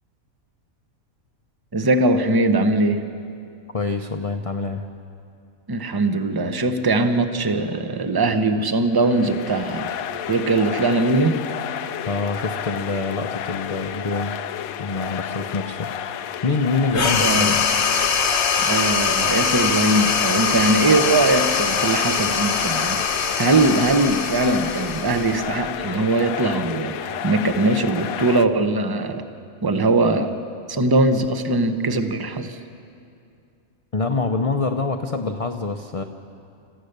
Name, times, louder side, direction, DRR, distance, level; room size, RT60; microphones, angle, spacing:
voice 1, 1.7-3.0 5.7-9.9 10.3-11.4 16.9-17.6 18.6-29.3 29.6-30.3 30.7-32.6, right 2 dB, 20° right, 8 dB, 0.8 m, -21 dB
voice 2, 3.7-4.8 12.1-14.3 14.8-15.9 16.4-17.6 33.9-36.0, left 3 dB, 35° left, 5 dB, 0.6 m, -25 dB
sound 1, 8.9-28.5, left 9 dB, 85° left, 1.1 m, -31 dB
sound 2, 16.9-25.8, left 6 dB, 55° left, 1.2 m, -22 dB
27.0 x 14.5 x 6.7 m, 2.5 s
omnidirectional pair, 1.4 m